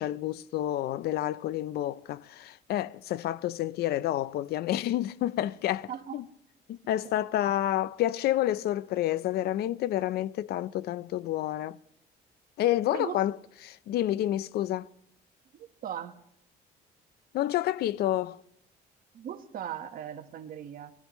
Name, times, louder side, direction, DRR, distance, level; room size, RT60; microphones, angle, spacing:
voice 1, 0.0-6.2 6.7-11.8 12.6-13.3 13.6-14.9 17.3-18.4, left 13 dB, 70° left, 0.5 m, -29 dB
voice 2, 5.9-6.2 7.0-7.1 12.9-13.2 15.5-16.2 19.1-20.9, right 9 dB, 55° right, 1.3 m, -38 dB
20.5 x 15.0 x 3.1 m
cardioid pair, 110°, 17 cm